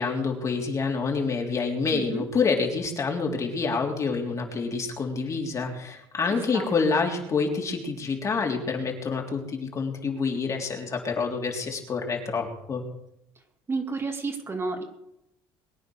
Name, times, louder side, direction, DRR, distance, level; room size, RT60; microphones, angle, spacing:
voice 1, 0.0-12.8, left 4 dB, 30° left, 1 dB, 3.7 m, -27 dB
voice 2, 1.9-2.2 6.5-6.7 13.7-14.8, right 4 dB, 25° right, 3 dB, 2.7 m, -31 dB
22.5 x 9.5 x 6.5 m, 0.84 s
cardioid pair, 115°, 10 cm